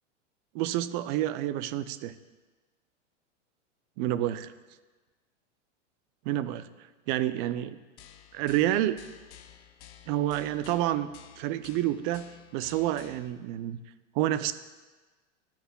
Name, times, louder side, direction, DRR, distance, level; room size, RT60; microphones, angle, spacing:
voice 1, 0.5-2.2 4.0-4.5 6.3-6.6 7.1-7.8 8.3-9.0 10.1-11.1 11.4-13.8 14.1-14.5, right 13 dB, 45° right, 13 dB, 0.4 m, -29 dB
sound 1, 8.0-13.3, left 9 dB, 65° left, 0.7 m, -52 dB
12.5 x 5.8 x 2.2 m, 1.3 s
hypercardioid pair, 110°, 37 cm